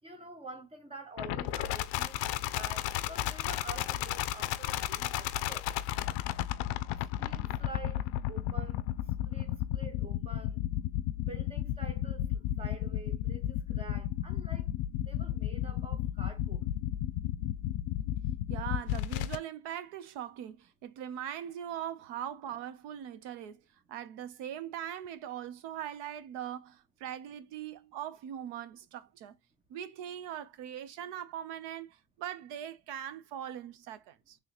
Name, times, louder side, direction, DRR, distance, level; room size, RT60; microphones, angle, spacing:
voice 1, 0.0-5.7 7.2-8.8 9.2-10.6 11.2-12.3 12.6-14.7 15.0-16.6, right 2 dB, 10° right, 0.8 m, -47 dB
sound 1, 1.2-19.4, left 13 dB, 60° left, 0.5 m, -33 dB
voice 2, 18.5-23.6 23.9-29.4 29.7-34.4, right 10 dB, 60° right, 0.7 m, -41 dB
3.2 x 2.9 x 3.9 m
cardioid pair, 150°, 47 cm